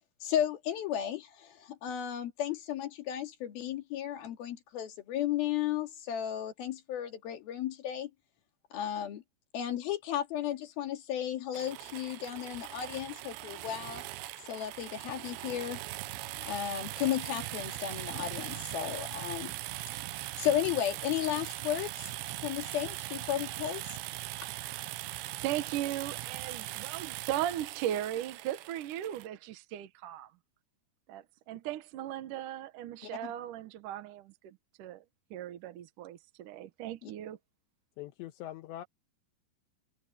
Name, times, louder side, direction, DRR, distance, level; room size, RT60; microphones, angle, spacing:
voice 1, 0.2-8.1 8.7-9.2 9.5-14.0 14.5-15.8 16.4-19.5 19.9-20.0 20.4-23.8 33.0-33.1 37.0-37.1, left 10 dB, 60° left, 3.7 m, -34 dB
sound 1, 11.5-29.3, right 17 dB, 85° right, 3.1 m, -40 dB
voice 2, 25.4-30.3 31.1-35.0 35.3-37.4, right 12 dB, 70° right, 2.1 m, -37 dB
voice 3, 38.0-38.9, left 13 dB, 80° left, 3.2 m, -42 dB
omnidirectional pair, 5.0 m